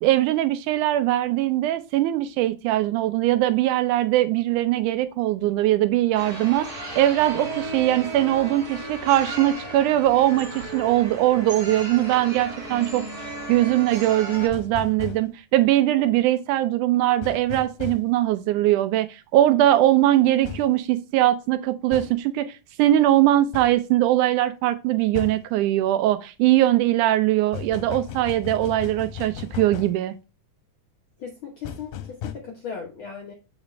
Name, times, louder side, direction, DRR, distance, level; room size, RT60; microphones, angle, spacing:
voice 1, 0.0-13.0 13.5-22.5 22.8-30.1, right 14 dB, 80° right, 1.9 m, -21 dB
sound 1, 6.1-14.5, right 2 dB, 10° right, 2.3 m, -35 dB
sound 2, 14.4-15.2 17.2-18.0 20.4-20.7 21.9-22.1 23.5-23.7 25.2-25.4 27.5-30.0 31.6-32.3, left 9 dB, 80° left, 2.3 m, -35 dB
voice 2, 31.2-33.3, left 6 dB, 65° left, 1.2 m, -37 dB
7.2 x 5.0 x 3.1 m
omnidirectional pair, 3.8 m